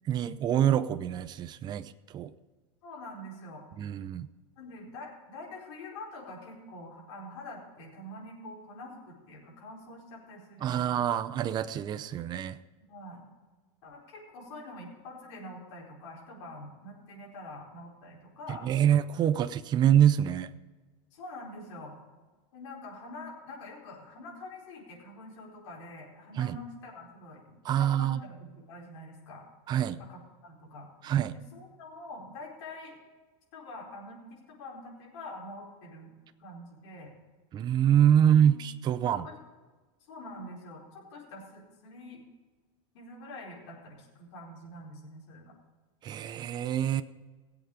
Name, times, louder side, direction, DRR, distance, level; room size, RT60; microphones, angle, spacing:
voice 1, 0.1-2.3 3.8-4.3 10.6-12.6 18.5-20.5 26.4-26.6 27.6-28.2 29.7-30.0 31.0-31.4 37.5-39.2 46.0-47.0, right 10 dB, 25° right, 12 dB, 0.6 m, -25 dB
voice 2, 2.8-3.7 4.6-11.0 12.9-13.2 13.8-18.7 21.1-22.0 22.5-28.4 28.7-29.4 30.0-30.9 31.3-33.0 33.5-36.1 36.4-37.1 38.2-38.6 39.0-39.4 40.1-42.2 42.9-45.5, left 1 dB, 70° left, -3 dB, 4.7 m, -45 dB
18.5 x 8.1 x 5.0 m, 1.3 s
supercardioid pair, 145°, 16 cm